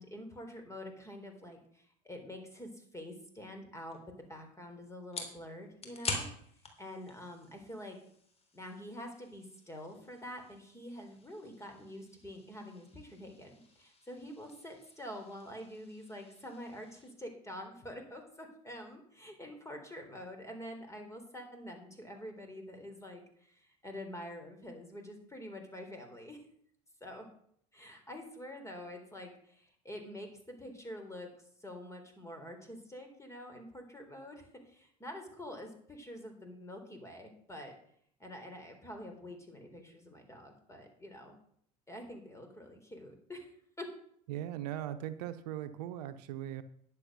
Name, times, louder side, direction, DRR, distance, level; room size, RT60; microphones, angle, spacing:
voice 1, 0.0-4.0 4.3-6.3 6.8-8.0 8.5-26.4 27.0-27.3 27.7-31.3 31.6-37.7 38.2-41.4 41.9-43.5 43.8-43.9, left 1 dB, 15° left, 4 dB, 3.7 m, -47 dB
sound 1, 3.9-17.1, left 2 dB, 30° left, 3.4 m, -47 dB
voice 2, 44.3-46.6, right 12 dB, 80° right, 11 dB, 0.8 m, -39 dB
10.5 x 7.6 x 6.2 m, 0.64 s
hypercardioid pair, 75°, 20 cm